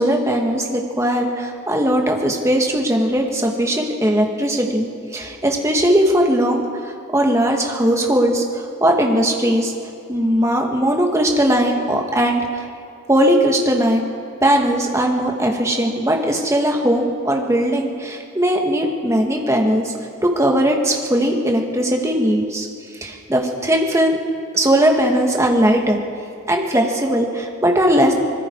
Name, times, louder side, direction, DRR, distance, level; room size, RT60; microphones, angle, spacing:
voice 1, 0.0-9.7 10.1-12.6 13.1-14.1 14.4-19.9 20.2-22.7 23.0-24.2 24.5-26.0 26.5-28.1, equal, 15° right, 1 dB, 2.1 m, -19 dB
25.5 x 20.5 x 4.9 m, 2.4 s
head